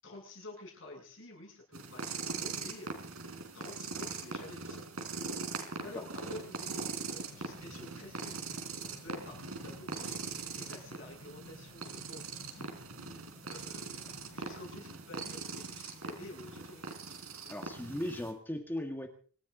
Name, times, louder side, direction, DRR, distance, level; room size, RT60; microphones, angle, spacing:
voice 1, 0.0-3.2 3.5-4.9 5.6-10.2 10.5-12.7 13.4-14.0 14.3-17.0, left 2 dB, 60° left, -1 dB, 7.9 m, -50 dB
sound 1, 1.7-18.3, right 4 dB, 85° right, 4.0 m, -41 dB
sound 2, 7.2-14.6, left 1 dB, 85° left, 4.9 m, -54 dB
voice 2, 17.5-19.1, left 1 dB, 10° left, 4 dB, 1.7 m, -38 dB
25.5 x 14.5 x 3.9 m, 0.42 s
head